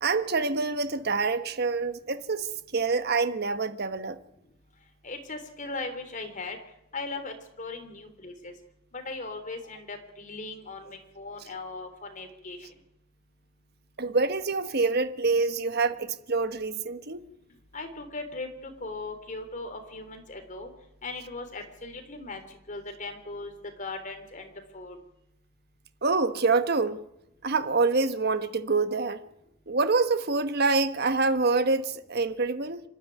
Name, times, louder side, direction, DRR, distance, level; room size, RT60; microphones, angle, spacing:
voice 1, 0.0-4.2 14.0-17.2 26.0-27.0 27.4-29.2 29.7-32.8, right 3 dB, 55° right, 1.2 m, -26 dB
voice 2, 5.0-6.6 6.9-8.5 8.9-12.7 17.7-20.7 21.0-22.4 22.7-23.5 23.8-25.0, left 3 dB, 40° left, 3.4 m, -38 dB
25.5 x 12.0 x 9.4 m
head